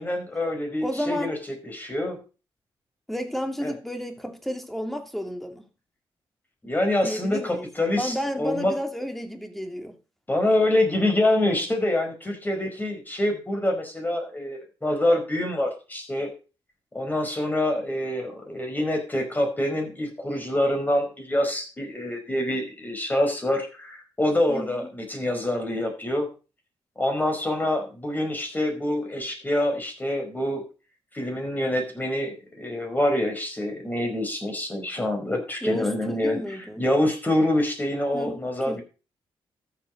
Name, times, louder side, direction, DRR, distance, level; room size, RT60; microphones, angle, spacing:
voice 1, 0.0-1.4 1.6-2.2 3.6-3.7 6.6-8.7 10.3-16.3 16.9-26.3 27.0-30.6 31.1-38.8, left 1 dB, 20° left, 5.0 m, -26 dB
voice 2, 0.8-1.3 3.1-5.7 7.0-7.7 8.0-9.9 24.5-24.9 35.6-36.8 38.1-38.4 38.7-38.8, equal, ahead, 2.6 m, -31 dB
13.0 x 7.8 x 5.3 m
cardioid pair, 85°, 9 cm